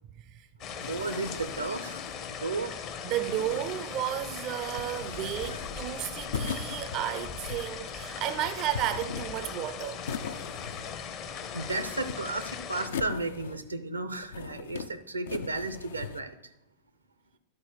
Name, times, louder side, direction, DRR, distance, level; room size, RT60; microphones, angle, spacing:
voice 1, 0.2-0.5 3.0-10.0, right 12 dB, 40° right, 0.4 m, -33 dB
sound 1, 0.6-12.9, left 7 dB, 40° left, 0.8 m, -39 dB
sound 2, 0.8-2.3 3.0-4.2 4.7-5.9 6.3-7.8 8.3-9.6 10.0-11.1 11.4-12.4 12.9-13.8 14.2-14.9 15.3-16.2, left 6 dB, 65° left, 0.5 m, -40 dB
voice 2, 0.9-2.0 2.3-2.8 5.5-5.6 11.5-16.3, right 3 dB, 80° right, 0.6 m, -34 dB
11.0 x 4.3 x 4.6 m
figure-of-eight pair, 90°, 0 cm